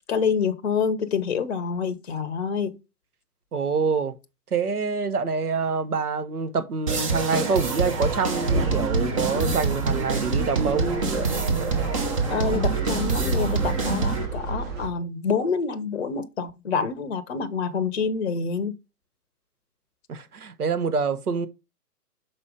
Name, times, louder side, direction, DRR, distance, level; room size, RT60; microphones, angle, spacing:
voice 1, 0.1-2.8 12.3-18.7, left 5 dB, 40° left, 0.8 m, -27 dB
voice 2, 3.5-4.1 4.5-10.9 20.1-21.5, right 5 dB, 65° right, 1.1 m, -26 dB
sound 1, 6.9-14.3, right 4 dB, 20° right, 0.7 m, -26 dB
sound 2, 7.8-14.9, right 3 dB, 50° right, 4.1 m, -30 dB
6.2 x 4.5 x 4.9 m
figure-of-eight pair, 130°, 49 cm